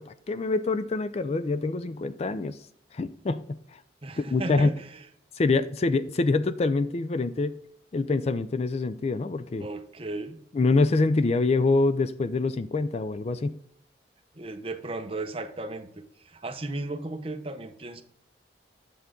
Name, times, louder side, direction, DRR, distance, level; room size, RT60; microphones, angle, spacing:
voice 1, 0.0-2.6 2.9-3.8 4.2-4.7 5.4-7.6 7.9-9.7 10.5-13.6, left 3 dB, 35° left, 0.4 m, -25 dB
voice 2, 4.0-5.0 9.6-10.4 14.3-18.0, right 2 dB, 30° right, 0.7 m, -35 dB
8.2 x 6.5 x 3.7 m
head